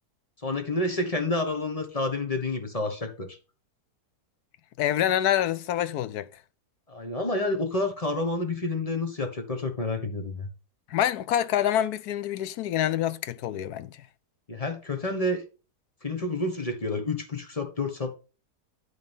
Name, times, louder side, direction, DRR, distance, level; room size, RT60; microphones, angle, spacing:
voice 1, 0.4-3.4 6.9-10.5 14.5-15.4 16.0-18.1, left 2 dB, 25° left, 1.4 m, -29 dB
voice 2, 4.8-6.3 10.9-14.1, left 11 dB, 75° left, 1.2 m, -26 dB
11.5 x 3.9 x 5.4 m
omnidirectional pair, 1.7 m